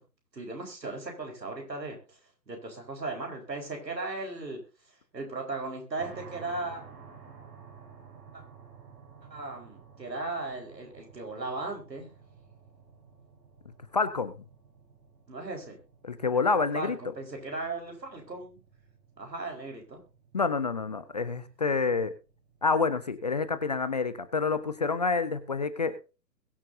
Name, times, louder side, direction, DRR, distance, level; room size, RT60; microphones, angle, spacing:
voice 1, 0.3-2.2 2.5-4.6 5.1-6.8 8.3-8.4 9.3-12.1 15.3-15.8 16.7-18.6 19.2-20.0, right 3 dB, 80° right, 2 dB, 4.7 m, -37 dB
sound 1, 6.0-25.7, right 5 dB, 60° right, 5.5 m, -54 dB
voice 2, 13.9-14.3 16.0-17.0 20.3-22.1 22.6-25.9, left 4 dB, 25° left, 12 dB, 0.6 m, -28 dB
21.5 x 7.5 x 2.7 m, 0.31 s
figure-of-eight pair, 135°, 50 cm